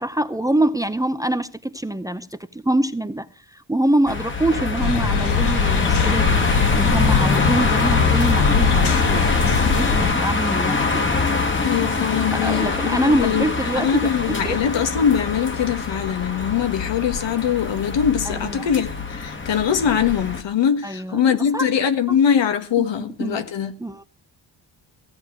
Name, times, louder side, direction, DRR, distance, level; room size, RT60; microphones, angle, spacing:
voice 1, 0.0-3.3 3.5-6.4 6.7-11.1 12.3-14.6 18.2-18.7 20.8-21.2 21.5-21.7 22.1-22.2 22.8-23.4 23.8-24.0, right 1 dB, 10° right, 0.6 m, -25 dB
sound 1, 4.1-20.4, left 4 dB, 25° left, 1.5 m, -24 dB
sound 2, 4.8-10.1, left 5 dB, 65° left, 1.8 m, -21 dB
voice 2, 11.6-23.7, left 8 dB, 85° left, 1.7 m, -22 dB
16.0 x 9.7 x 6.1 m
wide cardioid pair, 155°, 43 cm